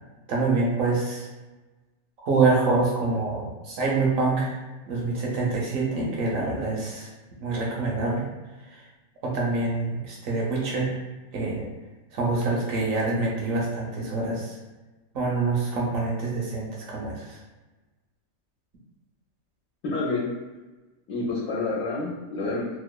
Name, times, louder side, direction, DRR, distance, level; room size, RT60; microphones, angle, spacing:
voice 1, 0.3-1.3 2.2-4.6 4.9-7.1 7.4-8.2 9.2-10.9 11.3-11.6 12.1-14.5 15.1-17.4, right 3 dB, 75° right, -3 dB, 1.1 m, -26 dB
voice 2, 19.8-20.3 21.1-22.8, left 3 dB, 75° left, -4 dB, 0.9 m, -28 dB
2.9 x 2.1 x 2.2 m, 1.2 s
omnidirectional pair, 1.4 m